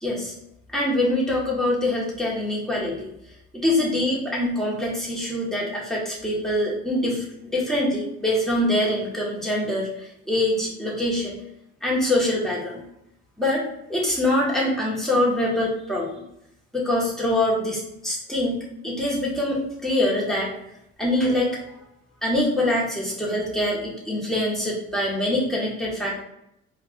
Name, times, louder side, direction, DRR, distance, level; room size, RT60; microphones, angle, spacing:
voice 1, 0.0-0.3 0.7-3.1 3.5-11.4 11.8-12.8 13.4-13.6 13.9-16.2 16.7-18.6 18.8-20.5 21.0-21.6 22.2-26.2, left 1 dB, ahead, -5 dB, 1.3 m, -24 dB
4.5 x 2.5 x 2.4 m, 0.79 s
cardioid pair, 90°, 30 cm